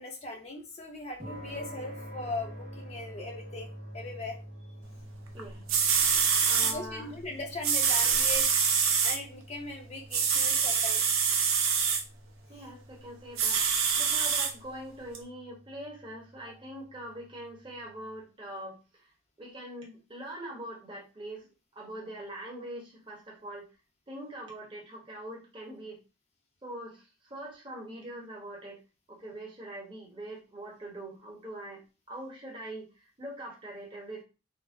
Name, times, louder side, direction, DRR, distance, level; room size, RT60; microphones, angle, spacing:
voice 1, 0.0-4.4 6.6-8.5 9.0-11.0, left 2 dB, 30° left, 1 dB, 0.5 m, -39 dB
sound 1, 1.2-17.7, equal, 50° right, 1.5 m, -47 dB
voice 2, 5.3-5.7 6.4-7.1 12.5-19.1 19.4-21.5 21.7-23.7 24.1-26.0 26.6-28.8 29.1-34.2, right 1 dB, 25° right, -3 dB, 0.8 m, -43 dB
sound 2, 5.4-5.5 5.7-6.7 7.6-9.2 10.1-12.0 13.4-14.5 15.1-15.2, right 6 dB, 85° right, 0.6 m, -25 dB
3.8 x 2.0 x 2.5 m, 0.31 s
head